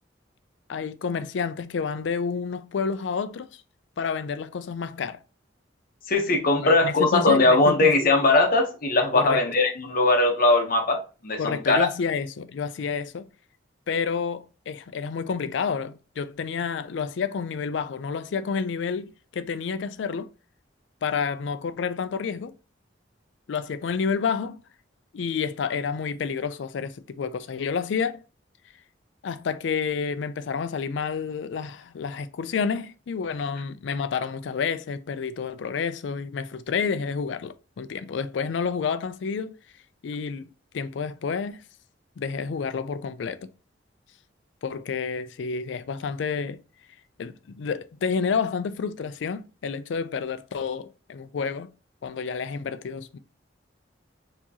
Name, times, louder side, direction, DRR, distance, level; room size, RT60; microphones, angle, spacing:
voice 1, 0.7-3.6 4.0-5.2 6.6-7.9 9.1-9.4 11.4-13.3 13.9-20.3 21.0-22.5 23.5-24.6 25.1-28.2 29.2-39.6 40.0-40.5 40.7-41.6 42.2-43.5 44.6-46.6 47.2-51.7 52.0-53.2, left 5 dB, 70° left, 0.4 m, -29 dB
voice 2, 6.1-11.9, left 2 dB, 50° left, 0.9 m, -20 dB
4.5 x 2.9 x 2.8 m
head